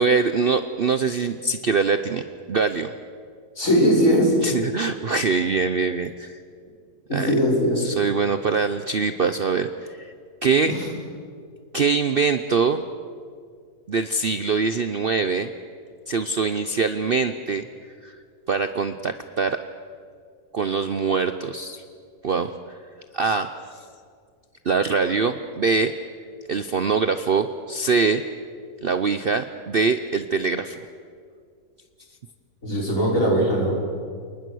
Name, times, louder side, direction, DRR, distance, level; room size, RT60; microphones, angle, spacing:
voice 1, 0.0-2.9 4.4-6.4 7.1-7.3 7.8-10.1 10.4-10.7 11.7-12.8 13.9-15.5 16.1-17.7 18.0-18.2 18.5-19.6 20.5-21.8 22.2-22.5 23.1-23.5 24.6-25.9 26.5-28.2 28.8-30.8, right 4 dB, 50° right, 9 dB, 0.7 m, -23 dB
voice 2, 3.6-4.3 7.1-7.8 10.6-10.8 32.6-33.7, equal, 55° left, -3 dB, 5.8 m, -20 dB
29.0 x 19.5 x 6.3 m, 2.1 s
omnidirectional pair, 1.7 m